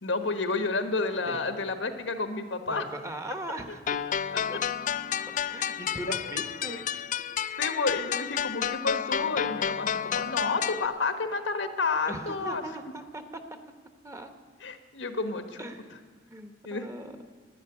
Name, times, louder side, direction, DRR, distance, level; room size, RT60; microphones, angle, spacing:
voice 1, 0.0-2.9 3.7-3.8 4.3-4.6 6.1-6.2 6.6-6.8 7.6-12.6 14.6-15.7 16.6-16.9, left 3 dB, 90° left, 8 dB, 1.3 m, -30 dB
voice 2, 2.7-4.0 4.3-4.6 5.5-7.1 12.1-13.2 14.0-14.3 15.6-15.9 16.3-17.1, right 1 dB, 15° right, 7 dB, 1.0 m, -39 dB
sound 1, 3.9-10.9, left 9 dB, 45° left, 0.3 m, -31 dB
11.5 x 9.7 x 9.7 m, 1.5 s
head